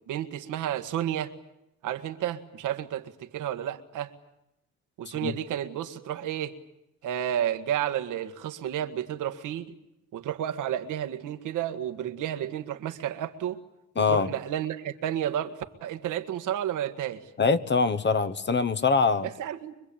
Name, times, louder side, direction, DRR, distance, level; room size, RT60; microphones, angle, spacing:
voice 1, 0.0-1.3 1.8-4.1 5.0-6.6 7.0-9.7 10.1-13.6 14.1-15.5 15.8-17.2 19.2-19.8, right 11 dB, 85° right, 1.9 m, -31 dB
voice 2, 14.0-14.3 17.4-19.3, left 4 dB, 35° left, 1.3 m, -24 dB
25.5 x 22.0 x 8.7 m
cardioid pair, 90°, 30 cm